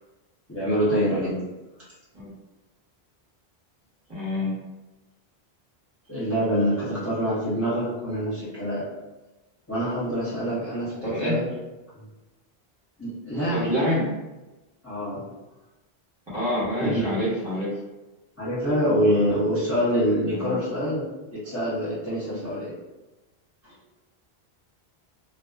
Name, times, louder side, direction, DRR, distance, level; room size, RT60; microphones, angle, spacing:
voice 1, 0.5-1.3 6.1-8.8 9.7-10.9 11.2-11.4 11.9-12.0 13.0-13.7 14.8-15.2 16.8-17.2 18.4-21.0 21.3-22.7, equal, 15° left, -10 dB, 0.5 m, -25 dB
voice 2, 4.1-4.5 11.0-11.4 13.3-14.1 16.3-17.7 20.3-20.6, left 1 dB, 25° right, -10 dB, 1.0 m, -27 dB
2.5 x 2.2 x 2.3 m, 1.1 s
omnidirectional pair, 1.1 m